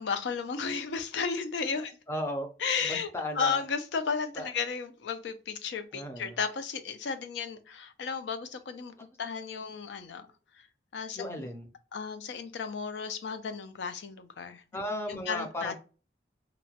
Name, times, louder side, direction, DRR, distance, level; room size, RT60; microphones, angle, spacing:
voice 1, 0.0-2.0 2.6-3.1 3.4-10.3 10.6-10.7 10.9-11.5 11.9-14.6 15.1-15.7, left 5 dB, 80° left, 0.4 m, -34 dB
voice 2, 2.1-2.5 2.8-3.6 4.4-4.5 5.9-6.4 9.0-9.1 11.2-11.7 14.7-15.7, left 1 dB, 15° left, 0.4 m, -35 dB
2.9 x 2.1 x 2.7 m
head